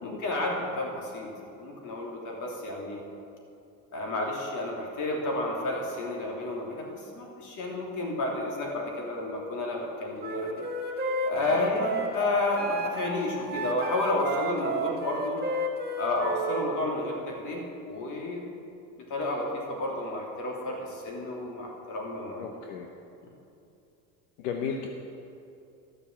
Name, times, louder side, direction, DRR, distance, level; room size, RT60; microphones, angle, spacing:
voice 1, 0.0-3.0 3.9-10.6 11.2-15.4 16.0-18.5 19.1-22.4, left 2 dB, 50° left, -1 dB, 3.1 m, -31 dB
Wind instrument woodwind instrument, 10.2-16.7, right 1 dB, 25° right, 1.7 m, -32 dB
voice 2, 22.4-22.9 24.4-24.9, left 7 dB, 80° left, 3 dB, 1.0 m, -35 dB
12.5 x 6.8 x 7.3 m, 2.7 s
supercardioid pair, 100°, 39 cm